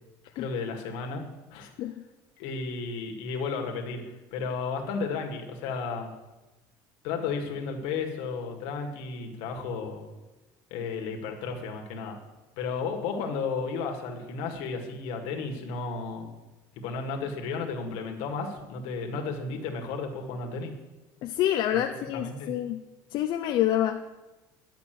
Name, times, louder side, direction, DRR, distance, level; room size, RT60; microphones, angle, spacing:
voice 1, 0.4-1.2 1.5-1.7 2.4-6.1 7.0-10.1 10.7-12.2 12.6-16.3 16.7-20.7 22.1-22.5, left 4 dB, 80° left, 3 dB, 1.8 m, -33 dB
voice 2, 21.2-22.8 23.1-24.0, left 12 dB, 55° left, 5 dB, 0.6 m, -27 dB
11.0 x 5.8 x 7.7 m, 1.1 s
cardioid pair, 140°, 9 cm